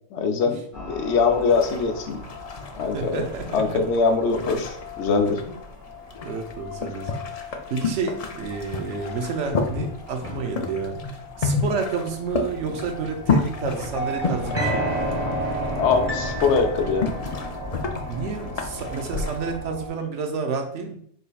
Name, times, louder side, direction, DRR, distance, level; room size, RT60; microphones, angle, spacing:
voice 1, 0.1-2.2 2.8-3.2 3.5-5.4 15.8-17.1, left 4 dB, 70° left, 5 dB, 0.9 m, -22 dB
sound 1, 0.7-19.9, equal, 15° right, 1.3 m, -37 dB
sound 2, 1.2-19.6, left 4 dB, 55° left, 0.4 m, -31 dB
voice 2, 2.8-3.8 6.2-11.0 11.4-15.0 18.1-21.0, right 5 dB, 80° right, 4 dB, 1.0 m, -30 dB
sound 3, 10.2-11.2 14.5-19.1, equal, 10° left, 1.0 m, -31 dB
5.1 x 4.1 x 2.3 m, 0.64 s
omnidirectional pair, 1.2 m